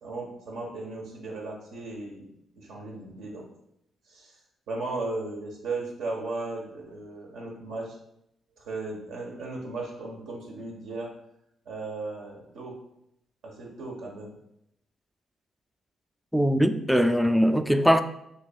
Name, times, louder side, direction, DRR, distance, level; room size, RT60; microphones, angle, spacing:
voice 1, 0.0-3.5 4.1-4.3 4.7-8.0 8.6-11.1 11.6-12.8 13.4-14.3, right 3 dB, 80° right, 1.2 m, -36 dB
voice 2, 16.3-18.0, equal, ahead, 0.3 m, -21 dB
6.4 x 3.1 x 2.3 m
supercardioid pair, 70°, 0 cm